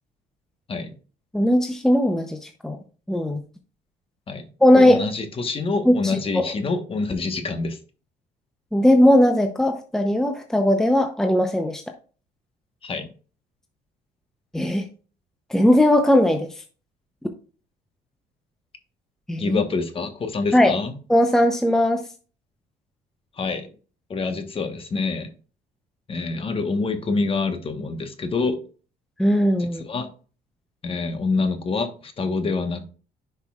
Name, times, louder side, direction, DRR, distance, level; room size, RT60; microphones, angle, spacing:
voice 1, 1.3-2.8 3.1-3.4 4.6-5.0 5.9-6.5 8.7-11.8 14.5-14.9 15.5-16.5 19.3-19.6 20.5-20.7 21.1-22.0 29.2-29.8, left 1 dB, 5° left, 5 dB, 0.7 m, -18 dB
voice 2, 4.7-7.8 12.8-13.1 19.4-21.0 23.4-23.7 24.1-25.3 26.1-28.6 29.6-30.1 30.8-32.9, left 4 dB, 35° left, 7 dB, 1.3 m, -26 dB
10.5 x 5.4 x 2.4 m, 0.38 s
cardioid pair, 110°, 17 cm